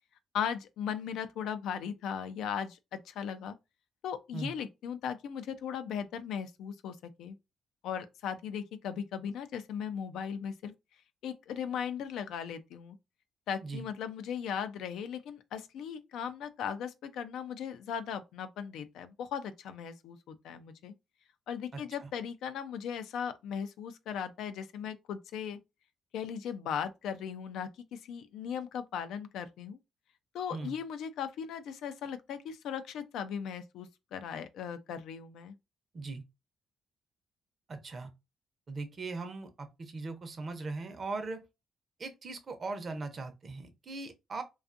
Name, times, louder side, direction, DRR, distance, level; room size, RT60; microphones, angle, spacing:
voice 1, 0.3-3.5 4.0-7.3 7.8-10.7 11.2-13.0 13.5-20.9 21.5-25.6 26.1-29.8 30.3-35.5, left 8 dB, 80° left, 0.3 m, -38 dB
voice 2, 21.7-22.1 30.5-30.8 35.9-36.2 37.7-38.1 38.7-41.5 42.0-44.4, right 3 dB, 40° right, 0.6 m, -39 dB
2.5 x 2.3 x 2.4 m
cardioid pair, 90°, 0 cm